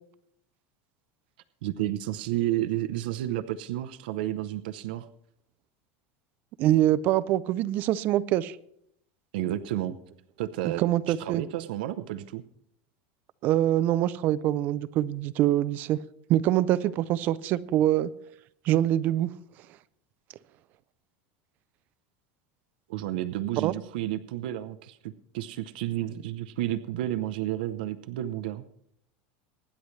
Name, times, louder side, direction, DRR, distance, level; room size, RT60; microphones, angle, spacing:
voice 1, 1.6-5.1 9.3-10.0 10.4-12.4 22.9-28.6, right 13 dB, 75° right, 0.7 m, -31 dB
voice 2, 6.6-8.6 10.6-11.4 13.4-16.0 16.3-18.1 18.7-19.3 23.6-23.7, right 13 dB, 35° right, 0.4 m, -24 dB
24.0 x 10.0 x 3.2 m
supercardioid pair, 170°, 5 cm